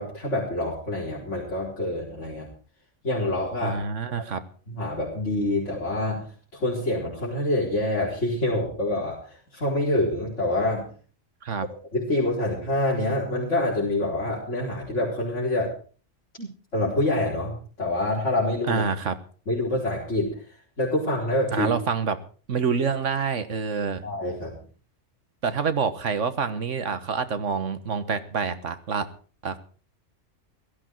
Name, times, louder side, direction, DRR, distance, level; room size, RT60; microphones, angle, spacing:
voice 1, 0.0-2.5 3.0-3.8 4.7-10.9 11.9-15.7 16.7-18.8 19.5-20.4 20.8-21.7 24.0-24.5, left 1 dB, 75° left, -5 dB, 4.5 m, -26 dB
voice 2, 3.6-4.4 11.4-11.7 16.4-16.5 18.7-19.2 21.5-22.2 22.5-24.0 25.4-29.1 29.4-29.6, right 5 dB, 80° right, 11 dB, 1.7 m, -27 dB
17.0 x 14.5 x 4.6 m, 0.40 s
omnidirectional pair, 1.2 m